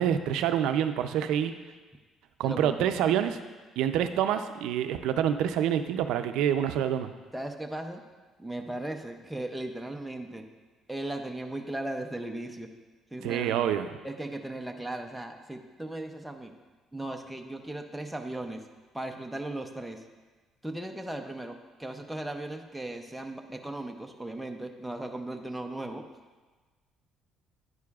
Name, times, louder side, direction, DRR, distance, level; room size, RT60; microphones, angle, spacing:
voice 1, 0.0-1.5 2.4-3.4 3.8-7.1 13.2-13.9, right 9 dB, 85° right, 8 dB, 0.4 m, -27 dB
voice 2, 2.4-2.9 7.3-8.0 8.4-10.4 10.9-12.7 13.1-13.6 14.0-16.5 16.9-18.6 18.9-20.0 20.6-26.0, right 1 dB, ahead, 3 dB, 0.5 m, -37 dB
9.6 x 9.5 x 2.4 m, 1.3 s
cardioid pair, 160°, 0 cm